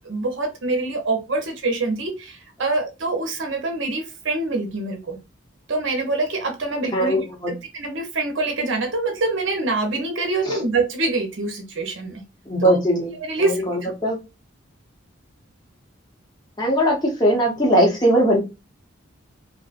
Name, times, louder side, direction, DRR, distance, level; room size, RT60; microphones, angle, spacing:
voice 1, 0.0-5.2 5.7-12.2 12.6-12.8 13.2-13.9, right 2 dB, 65° right, 4 dB, 0.7 m, -25 dB
voice 2, 6.9-7.5 10.5-10.6 12.5-13.1 13.4-14.2 16.6-18.4, equal, 20° left, -2 dB, 0.8 m, -20 dB
2.6 x 2.1 x 2.4 m, 0.25 s
head